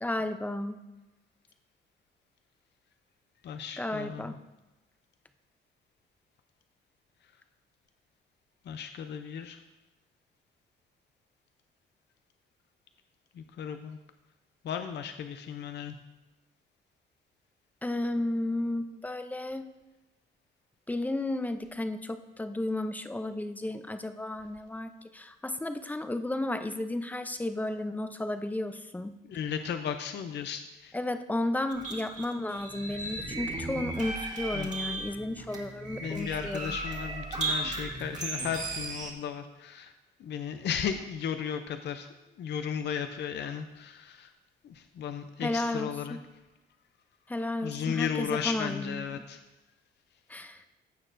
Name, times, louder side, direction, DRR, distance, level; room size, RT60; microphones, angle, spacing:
voice 1, 0.0-0.8 3.8-4.4 17.8-19.7 20.9-29.2 30.9-36.8 45.4-46.2 47.3-49.0 50.3-50.7, left 1 dB, 10° left, 9 dB, 0.6 m, -33 dB
voice 2, 3.4-4.4 8.6-9.6 13.3-14.0 14.6-16.0 29.2-30.9 34.5-34.7 36.0-39.9 40.2-42.1 42.4-44.3 44.6-46.2 47.6-49.4, left 8 dB, 60° left, 8 dB, 0.6 m, -35 dB
sound 1, 31.7-39.1, right 2 dB, 35° right, 1.9 m, -36 dB
15.0 x 6.5 x 2.6 m, 1.0 s
cardioid pair, 90°, 20 cm